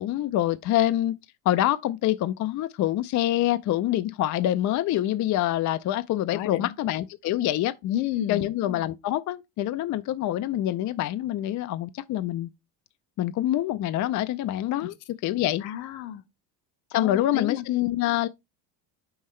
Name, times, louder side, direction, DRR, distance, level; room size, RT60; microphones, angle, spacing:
voice 1, 0.0-7.8 8.3-12.5 13.2-15.7 16.9-18.3, left 13 dB, 40° left, 0.4 m, -26 dB
voice 2, 6.3-6.7 7.8-8.5 14.8-14.9 15.6-16.2 16.9-17.6, left 12 dB, 70° left, 0.9 m, -31 dB
5.7 x 5.4 x 3.1 m
cardioid pair, 110°, 47 cm